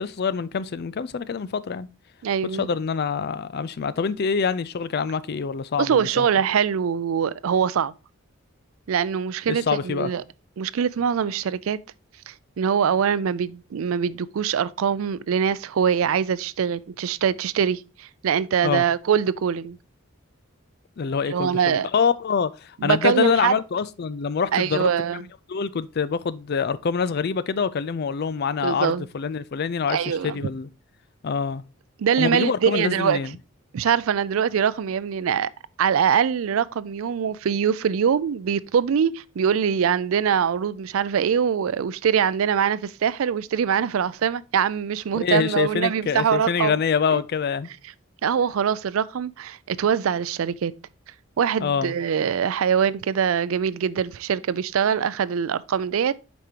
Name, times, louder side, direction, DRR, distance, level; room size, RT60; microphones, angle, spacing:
voice 1, 0.0-1.9 2.6-6.3 9.5-10.1 18.6-18.8 21.0-24.9 25.5-30.7 31.2-31.6 32.2-33.3 45.1-47.7 51.6-51.9, left 6 dB, 50° left, 0.4 m, -25 dB
voice 2, 2.2-2.7 5.8-7.9 8.9-10.2 10.6-11.8 12.3-19.8 21.2-21.9 22.8-23.5 24.5-25.2 28.6-29.0 29.9-30.4 32.0-33.2 33.7-35.5 35.8-46.8 47.1-47.2 48.2-50.7 51.4-56.1, right 7 dB, 75° right, 0.4 m, -23 dB
8.1 x 5.2 x 2.8 m
head